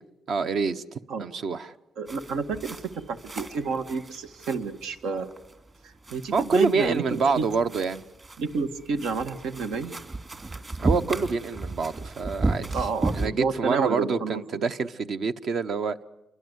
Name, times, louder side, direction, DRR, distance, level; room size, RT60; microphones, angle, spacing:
voice 1, 0.3-1.7 6.3-8.0 10.8-12.9 13.2-16.0, right 4 dB, 50° right, 1.0 m, -26 dB
voice 2, 2.0-5.3 5.8-7.5 8.4-9.9 12.7-14.7, right 5 dB, 80° right, 1.9 m, -30 dB
sound 1, 2.1-13.3, right 2 dB, 30° right, 2.8 m, -34 dB
28.5 x 23.5 x 8.2 m
cardioid pair, 125°, 0 cm